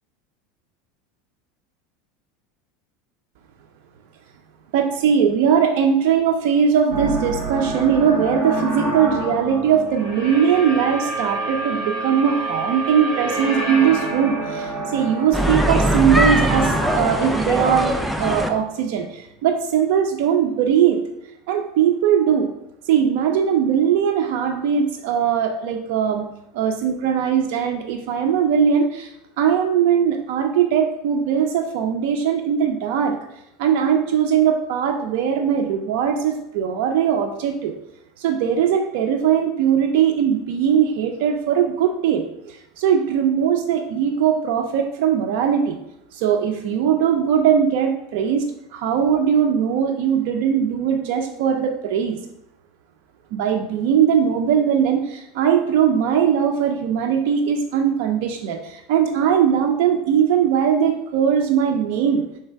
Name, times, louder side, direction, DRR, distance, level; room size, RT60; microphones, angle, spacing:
voice 1, 4.7-21.0 21.5-22.5 22.9-26.3 26.5-33.2 33.6-37.7 38.2-45.8 46.1-52.2 53.3-62.2, right 8 dB, 65° right, 3 dB, 0.5 m, -20 dB
sound 1, 6.9-19.0, right 1 dB, 40° right, 1.5 m, -28 dB
sound 2, 15.3-18.5, equal, ahead, 0.3 m, -21 dB
3.3 x 3.3 x 4.5 m, 0.82 s
supercardioid pair, 145°, 0 cm